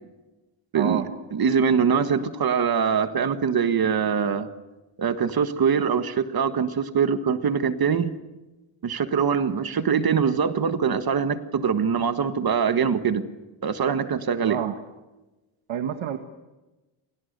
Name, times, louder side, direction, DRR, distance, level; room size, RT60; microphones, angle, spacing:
voice 1, 0.7-1.1 14.4-14.8 15.7-16.2, right 10 dB, 70° right, 7 dB, 1.9 m, -28 dB
voice 2, 1.3-4.5 5.0-8.2 8.8-13.2 13.6-14.6, right 6 dB, 45° right, 10 dB, 1.6 m, -23 dB
30.0 x 27.5 x 6.8 m, 1.1 s
wide cardioid pair, 160°, 49 cm